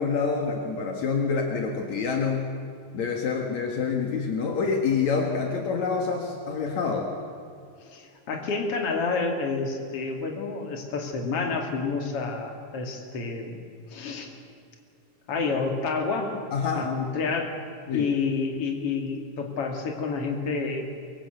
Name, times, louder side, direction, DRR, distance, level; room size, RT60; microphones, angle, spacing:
voice 1, 0.0-2.4 2.9-7.1 16.5-16.9 17.9-18.1, left 5 dB, 70° left, 2 dB, 3.1 m, -27 dB
voice 2, 7.8-13.6 13.9-14.3 15.3-16.3 16.7-17.5 17.9-21.0, left 4 dB, 50° left, 3 dB, 3.3 m, -29 dB
23.5 x 23.0 x 8.0 m, 2.4 s
omnidirectional pair, 3.4 m